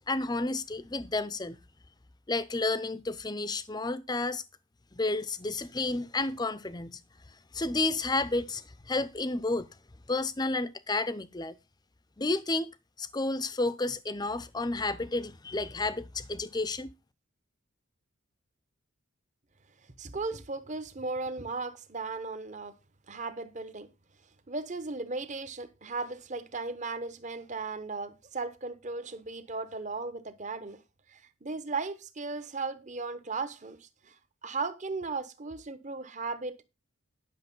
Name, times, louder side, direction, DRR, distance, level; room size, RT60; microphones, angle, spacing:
voice 1, 0.1-1.6 2.3-4.4 4.9-7.0 7.5-9.7 10.1-11.6 12.2-12.7 13.0-16.9, left 2 dB, 20° left, 0.6 m, -31 dB
voice 2, 20.0-22.8 23.1-23.9 24.5-30.8 31.1-36.6, right 3 dB, 35° right, 0.9 m, -36 dB
10.5 x 6.3 x 5.4 m
head